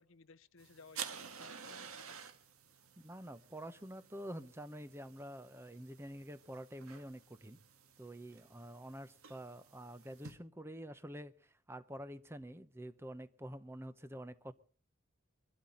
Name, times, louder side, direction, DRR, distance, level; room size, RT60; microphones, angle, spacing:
voice 1, 0.0-2.2, left 4 dB, 65° left, 0.7 m, -59 dB
sound 1, 0.6-10.3, right 7 dB, 80° right, 1.7 m, -52 dB
voice 2, 3.0-7.6 8.0-14.5, right 1 dB, 10° right, 0.8 m, -48 dB
23.0 x 12.5 x 3.9 m
head